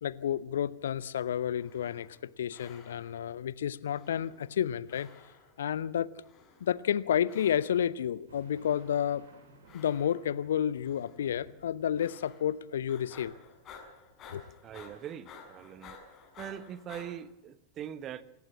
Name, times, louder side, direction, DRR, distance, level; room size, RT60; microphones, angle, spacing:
voice 1, 0.0-5.1 5.6-6.1 6.6-9.2 9.7-13.3 14.3-14.4, left 9 dB, 65° left, 0.8 m, -31 dB
sound 1, 1.5-2.2 2.5-3.3 3.9-4.6 4.9-5.6 6.2-6.8 7.2-7.9 8.5-9.1 9.6-10.4 10.8-11.3 12.0-12.6 12.9-17.1, left 5 dB, 30° left, 5.6 m, -54 dB
sound 2, 8.2-14.9 15.3-16.1 16.5-17.1, right 3 dB, 65° right, 6.2 m, -61 dB
voice 2, 14.6-16.0 16.4-18.2, right 10 dB, 30° right, 1.2 m, -42 dB
26.5 x 14.5 x 7.4 m
figure-of-eight pair, 90°, 0 cm